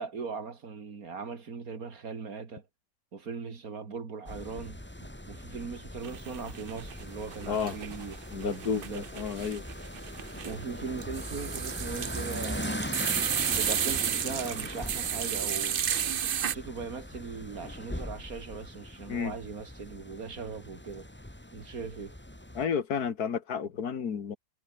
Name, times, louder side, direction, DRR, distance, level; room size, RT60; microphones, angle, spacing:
voice 1, 0.0-2.6 3.1-9.0 10.4-12.9 13.5-15.8 16.4-21.1 21.5-22.2, right 5 dB, 70° right, 2.9 m, -39 dB
sound 1, 4.3-22.7, left 1 dB, 5° left, 2.0 m, -41 dB
sound 2, 6.0-7.0 7.3-16.5, right 9 dB, 50° right, 0.7 m, -32 dB
voice 2, 8.3-9.6 19.1-19.3 22.5-24.4, left 7 dB, 85° left, 2.1 m, -31 dB
omnidirectional pair, 1.6 m